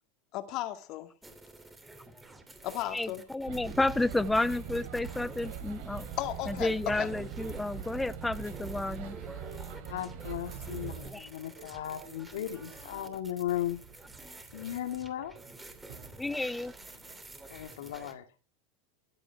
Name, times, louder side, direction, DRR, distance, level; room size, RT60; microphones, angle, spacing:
voice 1, 0.3-1.1 2.6-3.2 6.2-7.1, left 14 dB, 50° left, 2.1 m, -35 dB
sound 1, 1.2-18.1, right 2 dB, 10° right, 2.8 m, -50 dB
voice 2, 2.9-6.1 6.5-9.2 11.0-11.3 16.2-16.7, left 2 dB, 5° left, 0.5 m, -31 dB
sound 2, 3.5-11.1, right 7 dB, 60° right, 4.1 m, -42 dB
sound 3, 9.0-17.2, right 6 dB, 85° right, 5.3 m, -55 dB
voice 3, 9.9-13.8 14.5-15.3 17.5-18.3, left 12 dB, 90° left, 2.3 m, -36 dB
15.5 x 10.5 x 4.7 m
supercardioid pair, 130°, 0 cm